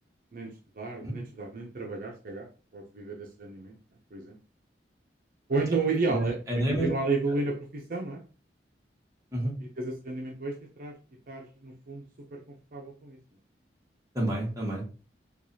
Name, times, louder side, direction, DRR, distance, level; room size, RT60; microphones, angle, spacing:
voice 1, 0.3-2.5 2.7-3.8 4.1-4.4 5.5-6.4 6.7-8.2 9.8-10.9 11.3-12.0 12.3-12.4 12.7-13.2, right 3 dB, 50° right, 0 dB, 0.5 m, -32 dB
voice 2, 6.1-6.9 9.3-9.5 14.1-14.8, right 1 dB, 20° right, -2 dB, 1.1 m, -29 dB
4.6 x 2.3 x 2.6 m, 0.36 s
head